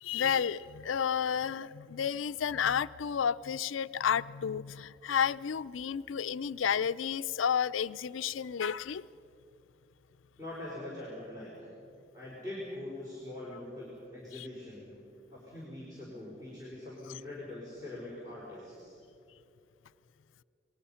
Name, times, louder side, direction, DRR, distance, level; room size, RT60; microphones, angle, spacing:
voice 1, 0.0-9.0 14.3-14.5, left 7 dB, 85° left, 14 dB, 0.4 m, -31 dB
voice 2, 10.4-11.5 12.1-14.9 15.3-18.9, left 1 dB, 20° right, -7 dB, 4.7 m, -43 dB
28.0 x 20.5 x 5.7 m, 2.7 s
head